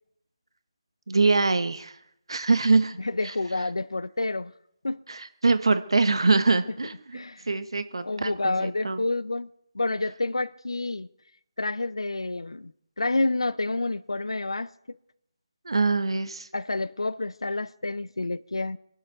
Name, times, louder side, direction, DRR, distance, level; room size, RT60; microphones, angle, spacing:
voice 1, 1.1-2.0 2.3-3.0 3.2-3.3 5.1-7.2 7.5-9.0 15.6-16.5, right 3 dB, 70° right, 1.1 m, -24 dB
voice 2, 3.0-4.5 4.8-5.0 7.1-7.5 8.0-9.5 9.7-11.1 11.6-12.7 13.0-15.0 16.5-18.8, left 2 dB, 80° left, 0.6 m, -29 dB
24.0 x 12.0 x 4.6 m
figure-of-eight pair, 150°, 3 cm